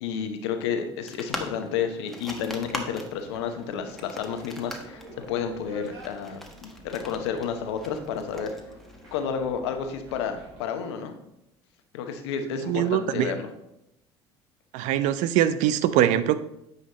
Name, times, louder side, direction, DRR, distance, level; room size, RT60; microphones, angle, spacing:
voice 1, 0.0-8.5 9.1-11.2 11.9-13.5, left 7 dB, 75° left, 0.9 m, -31 dB
sound 1, 1.1-9.3, equal, ahead, 1.3 m, -41 dB
sound 2, 2.2-10.6, right 1 dB, 80° right, 2.8 m, -48 dB
voice 2, 12.7-13.3 14.7-16.4, right 11 dB, 60° right, 0.5 m, -22 dB
9.4 x 5.6 x 3.0 m
hypercardioid pair, 65°, 14 cm